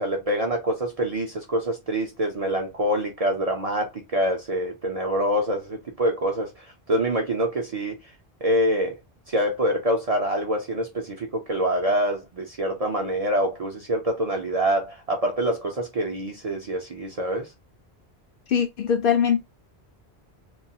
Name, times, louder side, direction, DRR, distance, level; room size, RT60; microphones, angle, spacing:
voice 1, 0.0-6.5 6.9-8.0 8.4-9.0 9.3-17.5, right 1 dB, 50° right, 0.5 m, -25 dB
voice 2, 18.5-19.4, left 7 dB, 65° left, 0.7 m, -21 dB
2.3 x 2.3 x 2.7 m
omnidirectional pair, 1.1 m